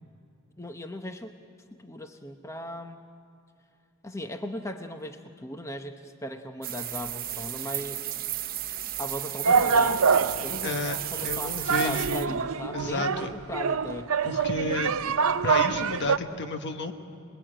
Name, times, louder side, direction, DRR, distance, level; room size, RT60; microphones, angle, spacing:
voice 1, 0.6-1.4 1.8-3.0 4.0-8.1 9.0-10.1 10.4-14.1, left 1 dB, 15° left, 6 dB, 0.8 m, -37 dB
sound 1, 6.6-12.3, right 12 dB, 45° right, 0.9 m, -34 dB
sound 2, 9.4-16.2, right 5 dB, 70° right, 0.6 m, -25 dB
voice 2, 10.6-11.0 11.2-12.4 12.7-13.3 14.2-14.9 15.4-16.9, left 2 dB, 55° left, 6 dB, 1.5 m, -31 dB
27.0 x 21.5 x 8.8 m, 2.5 s
head